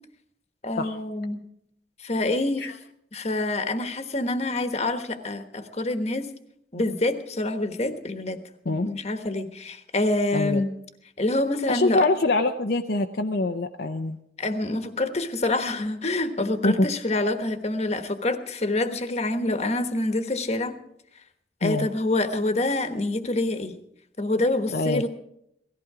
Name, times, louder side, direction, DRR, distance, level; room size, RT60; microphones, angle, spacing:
voice 1, 0.6-1.4 2.0-2.6 3.1-6.3 6.7-8.4 8.8-10.7 11.2-12.1 14.4-20.8 21.6-23.7 24.2-25.1, left 2 dB, 35° left, 8 dB, 1.2 m, -26 dB
voice 2, 11.7-14.2 16.6-16.9 21.6-21.9 24.7-25.1, left 2 dB, 60° left, 4 dB, 0.7 m, -24 dB
18.0 x 14.5 x 4.9 m, 0.75 s
head